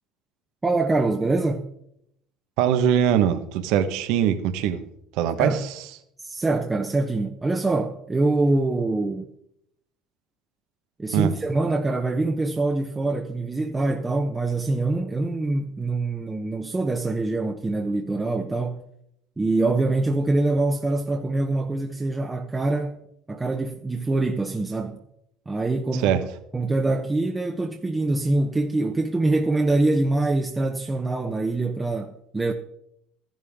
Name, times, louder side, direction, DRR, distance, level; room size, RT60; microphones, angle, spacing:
voice 1, 0.6-1.7 5.4-5.6 6.2-9.3 11.0-18.8 19.4-23.0 23.3-25.0 25.5-26.2 26.5-32.5, right 2 dB, 15° right, 0.9 m, -24 dB
voice 2, 2.6-4.8 5.1-5.8 11.1-11.3 25.9-26.2, right 9 dB, 75° right, 1.2 m, -22 dB
14.0 x 11.0 x 3.6 m
supercardioid pair, 115°, 0 cm